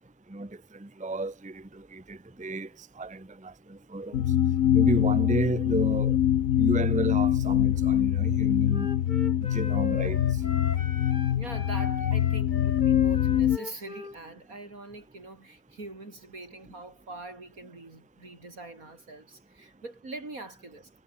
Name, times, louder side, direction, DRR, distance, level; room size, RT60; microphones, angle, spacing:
voice 1, 0.3-2.7 3.0-4.2 4.7-6.2 6.6-8.9 9.5-10.2, right 2 dB, 5° right, 1.0 m, -32 dB
sound 1, 4.1-13.6, left 11 dB, 70° left, 1.2 m, -24 dB
Wind instrument woodwind instrument, 8.7-14.2, left 3 dB, 35° left, 2.1 m, -39 dB
voice 2, 11.3-20.9, right 2 dB, 75° right, 5.6 m, -43 dB
omnidirectional pair, 1.5 m